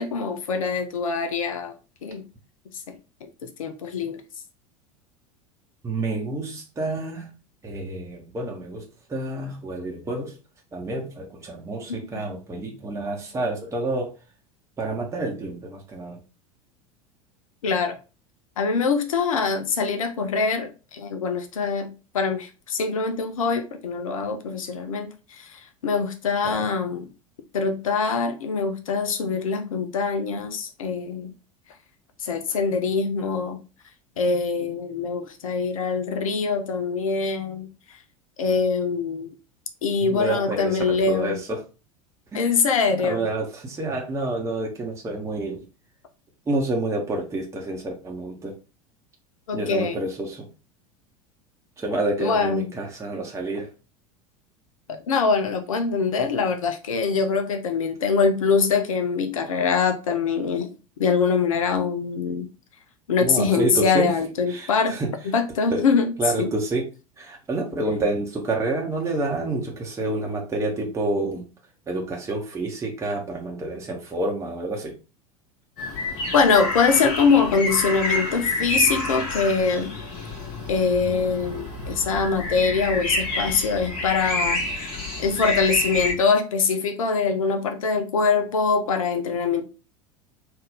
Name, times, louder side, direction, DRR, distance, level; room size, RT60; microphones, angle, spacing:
voice 1, 0.0-1.7 2.0-2.2 3.2-4.2 17.6-18.0 18.6-27.1 27.5-31.3 32.2-33.6 34.2-37.7 38.4-39.3 39.8-41.4 42.3-43.3 49.5-50.0 52.2-52.7 54.9-60.7 61.0-62.5 63.1-65.0 65.2-66.5 76.3-79.9 80.7-84.6 85.2-89.6, left 5 dB, 65° left, 0.5 m, -23 dB
voice 2, 5.8-7.3 7.6-10.3 10.7-14.1 14.8-16.2 26.4-26.7 40.0-41.6 42.3-42.5 43.0-45.6 46.5-48.5 49.5-50.5 51.8-53.7 63.2-64.1 64.5-65.1 65.7-65.8 66.2-66.8 67.2-71.4 71.9-74.9, right 2 dB, 15° right, 0.9 m, -28 dB
sound 1, 75.8-86.1, left 2 dB, 45° left, 1.6 m, -28 dB
3.7 x 2.5 x 3.4 m
figure-of-eight pair, 80°, 18 cm